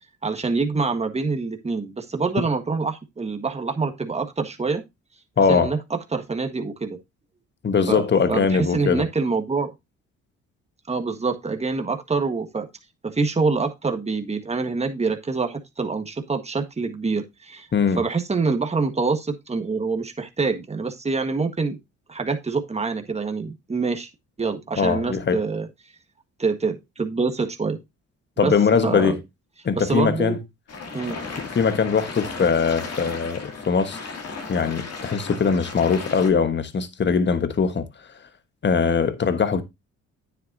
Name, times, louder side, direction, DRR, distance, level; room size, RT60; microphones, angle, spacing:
voice 1, 0.2-4.8 5.5-7.0 7.9-8.0 8.3-9.7 10.9-12.7 13.0-17.7 18.0-21.8 22.1-24.1 24.4-25.7 26.4-27.8 28.4-28.5 28.8-29.2 29.7-30.4 30.9-31.2, right 4 dB, 20° right, 1.6 m, -25 dB
voice 2, 5.4-5.8 7.6-9.0 17.7-18.0 24.8-25.4 28.4-29.2 29.6-30.4 31.4-34.0 34.5-37.8 38.6-39.6, left 5 dB, 35° left, 1.3 m, -21 dB
sound 1, 30.7-36.3, left 4 dB, 55° left, 2.7 m, -35 dB
9.4 x 8.1 x 2.7 m
cardioid pair, 90°, 30 cm